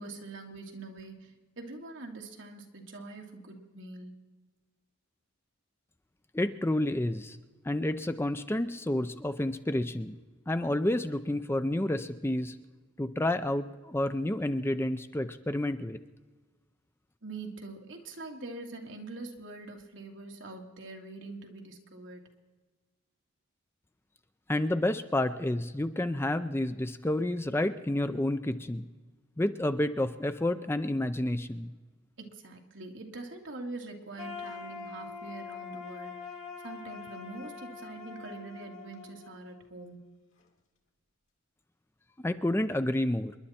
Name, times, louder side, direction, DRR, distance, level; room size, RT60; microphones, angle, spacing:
voice 1, 0.0-4.1 17.2-22.3 32.2-40.0, right 2 dB, 65° right, 1 dB, 2.4 m, -44 dB
voice 2, 6.3-7.4 7.6-10.2 10.5-12.6 13.0-16.0 24.5-28.8 29.4-31.7 42.2-43.4, left 1 dB, 10° left, 10 dB, 0.5 m, -30 dB
sound 1, 34.2-40.1, left 5 dB, 90° left, 2.5 m, -44 dB
28.0 x 11.0 x 4.3 m, 1.3 s
head